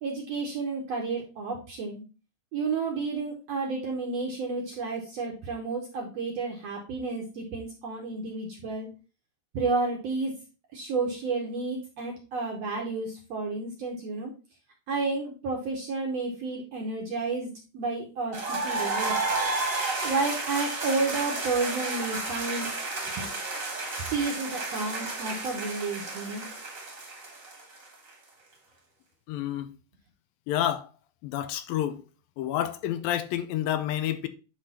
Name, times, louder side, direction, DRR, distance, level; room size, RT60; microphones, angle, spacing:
voice 1, 0.0-2.0 2.5-8.9 9.5-10.3 10.7-14.3 14.9-19.1 20.0-22.7 23.2-23.3 24.1-26.4, right 3 dB, 65° right, 1.7 m, -31 dB
sound 1, 18.3-28.1, right 3 dB, 40° right, 1.2 m, -32 dB
voice 2, 29.3-29.7 30.5-30.9 31.2-32.0 32.4-34.3, left 11 dB, 85° left, 2.4 m, -29 dB
9.7 x 3.4 x 4.2 m
omnidirectional pair, 4.2 m